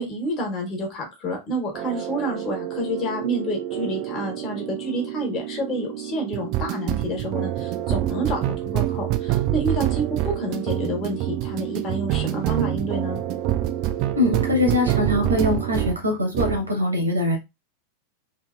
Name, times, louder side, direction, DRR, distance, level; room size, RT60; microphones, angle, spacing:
voice 1, 0.0-13.2, equal, 30° left, 2 dB, 1.3 m, -29 dB
sound 1, 1.7-16.0 16.3-16.7, right 13 dB, 40° right, 0.3 m, -27 dB
voice 2, 14.2-17.4, left 2 dB, 80° right, 2 dB, 1.1 m, -22 dB
2.8 x 2.8 x 2.4 m, 0.22 s
figure-of-eight pair, 90°, 0 cm